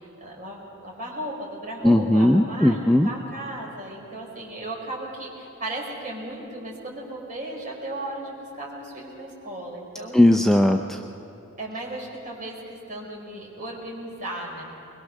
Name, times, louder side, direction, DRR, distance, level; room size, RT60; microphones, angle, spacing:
voice 1, 0.2-10.2 11.6-14.6, right 1 dB, 40° right, -2 dB, 4.4 m, -35 dB
voice 2, 1.8-3.1 10.1-11.0, left 1 dB, ahead, 4 dB, 0.5 m, -18 dB
22.5 x 21.0 x 6.4 m, 2.7 s
head